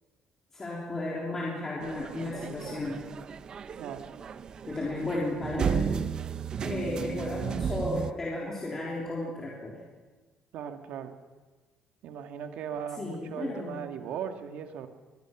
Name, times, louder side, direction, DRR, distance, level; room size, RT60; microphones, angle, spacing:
voice 1, 0.5-3.0 4.7-6.1 6.6-9.8 13.0-13.8, left 2 dB, 20° left, -4 dB, 3.7 m, -34 dB
sound 1, 1.8-8.1, right 7 dB, 35° right, 0.7 m, -34 dB
voice 2, 3.8-4.1 10.5-11.2 12.0-14.9, right 8 dB, 75° right, 6 dB, 1.9 m, -38 dB
25.5 x 20.0 x 6.1 m, 1.3 s
cardioid pair, 155°, 2 cm